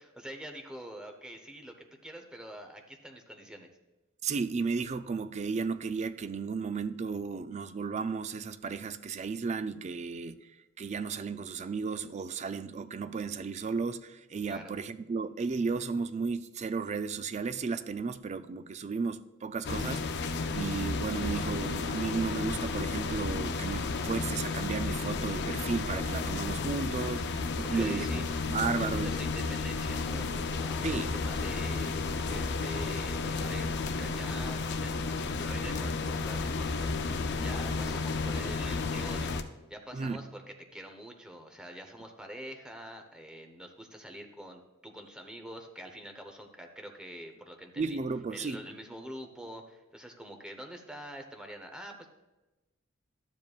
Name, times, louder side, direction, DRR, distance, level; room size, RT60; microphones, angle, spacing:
voice 1, 0.0-3.7 14.5-14.7 27.6-28.3 28.8-48.0 48.3-52.1, equal, 5° right, 0.8 m, -45 dB
voice 2, 4.2-10.4 10.8-20.2 20.5-29.2 30.8-31.1 39.9-40.2 47.8-48.6, right 5 dB, 35° right, 0.3 m, -34 dB
sound 1, 19.6-39.4, left 4 dB, 55° left, 0.5 m, -32 dB
12.0 x 7.3 x 2.4 m
head